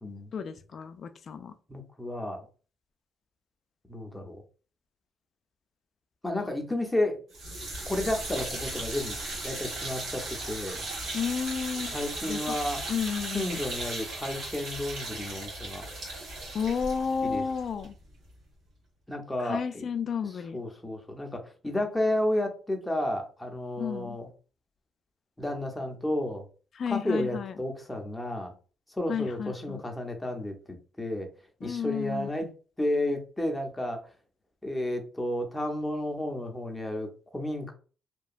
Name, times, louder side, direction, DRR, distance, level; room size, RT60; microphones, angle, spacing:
voice 1, 0.3-1.5 11.1-12.0 12.2-12.6 12.9-13.6 16.5-17.9 19.4-20.6 23.8-24.2 26.8-27.6 29.1-29.8 31.6-32.3, left 6 dB, 55° left, 0.3 m, -32 dB
voice 2, 1.7-2.5 3.9-4.4 6.2-7.2 7.9-9.2 9.4-10.9 11.9-12.8 13.3-15.9 17.2-17.4 19.1-19.9 20.5-24.3 25.4-26.5 26.9-28.5 28.9-30.5 31.0-31.3 31.6-32.5 32.8-34.0 34.6-37.7, left 1 dB, 10° left, 0.7 m, -32 dB
sound 1, 7.3-18.4, right 2 dB, 75° right, 1.2 m, -37 dB
2.8 x 2.2 x 2.4 m
cardioid pair, 90°, 0 cm